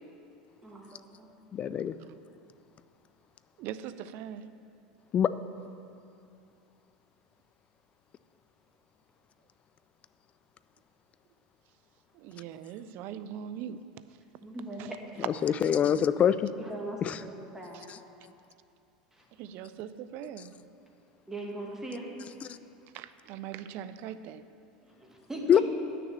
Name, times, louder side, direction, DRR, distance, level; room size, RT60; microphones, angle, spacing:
voice 1, 0.6-1.3 14.4-15.0 16.5-18.0 19.1-19.3 21.2-22.1 24.8-25.6, right 1 dB, 10° right, -1 dB, 2.1 m, -40 dB
voice 2, 1.5-1.9 5.1-5.3 15.4-16.5 25.5-25.6, left 9 dB, 35° left, 14 dB, 0.4 m, -23 dB
voice 3, 3.6-4.5 12.1-13.8 14.8-14.9 19.4-20.6 22.9-24.4, right 9 dB, 60° right, 13 dB, 0.5 m, -41 dB
10.0 x 6.7 x 7.4 m, 2.6 s
hypercardioid pair, 95°, 4 cm